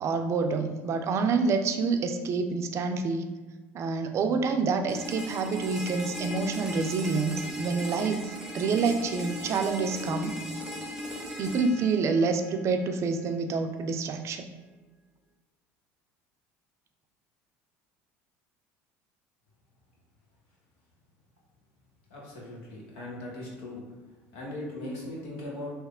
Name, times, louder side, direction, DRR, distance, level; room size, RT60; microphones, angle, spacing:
voice 1, 0.0-3.3 3.7-10.6 11.4-14.5, right 4 dB, 45° right, 6 dB, 0.4 m, -27 dB
sound 1, 4.9-12.9, left 1 dB, 10° right, 0.7 m, -38 dB
voice 2, 22.1-23.8 24.3-25.7, left 1 dB, 85° left, -3 dB, 1.2 m, -39 dB
3.2 x 2.8 x 3.6 m, 1.3 s
supercardioid pair, 95°, 7 cm